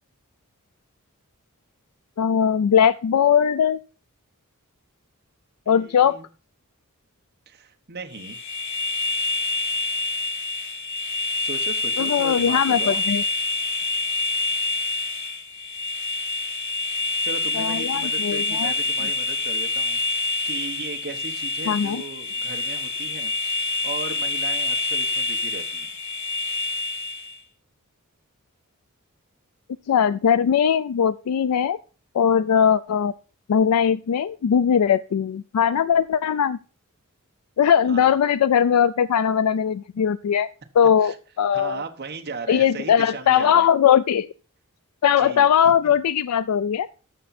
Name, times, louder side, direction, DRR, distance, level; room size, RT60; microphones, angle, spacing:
voice 1, 2.2-3.8 5.7-6.2 12.0-13.2 17.6-18.7 21.7-22.0 29.9-31.8 32.1-33.1 33.5-36.6 37.6-40.5 40.8-41.8 42.5-44.3 45.0-46.9, left 8 dB, 90° left, 0.4 m, -20 dB
voice 2, 5.6-6.3 7.5-8.4 11.4-13.0 17.2-25.9 37.9-38.1 41.0-41.2 41.5-43.7 45.2-45.5, right 4 dB, 45° right, 1.1 m, -37 dB
sound 1, 8.1-27.4, left 3 dB, 55° left, 1.3 m, -27 dB
13.5 x 5.8 x 4.2 m
head